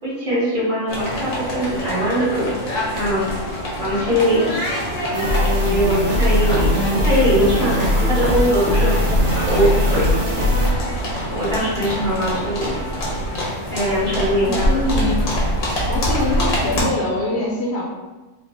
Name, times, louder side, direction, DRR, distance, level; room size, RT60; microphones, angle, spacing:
voice 1, 0.0-3.3 3.8-4.7 5.6-10.3 11.3-12.8 13.7-14.8, equal, 40° right, -10 dB, 1.7 m, -22 dB
sound 1, 0.9-16.8, equal, 90° left, 1.4 m, -25 dB
sound 2, 5.1-10.7, left 1 dB, 65° right, 1.2 m, -20 dB
voice 2, 6.9-7.2 14.4-15.3 15.9-17.8, left 2 dB, 60° left, -3 dB, 0.9 m, -24 dB
4.0 x 2.4 x 3.5 m, 1.2 s
omnidirectional pair, 1.4 m